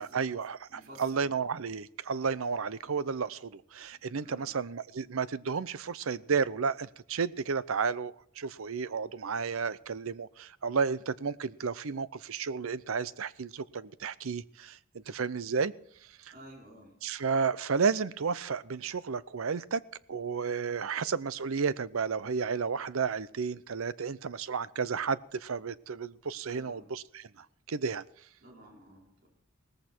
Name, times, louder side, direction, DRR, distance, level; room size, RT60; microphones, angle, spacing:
voice 1, 0.0-15.7 16.2-16.3 17.0-19.8 20.1-28.0, right 5 dB, 75° right, 17 dB, 0.6 m, -32 dB
voice 2, 0.7-1.4 3.9-4.5 16.3-16.9 26.5-26.9 28.4-29.3, equal, 45° right, -2 dB, 4.9 m, -53 dB
18.5 x 14.5 x 4.5 m, 0.66 s
head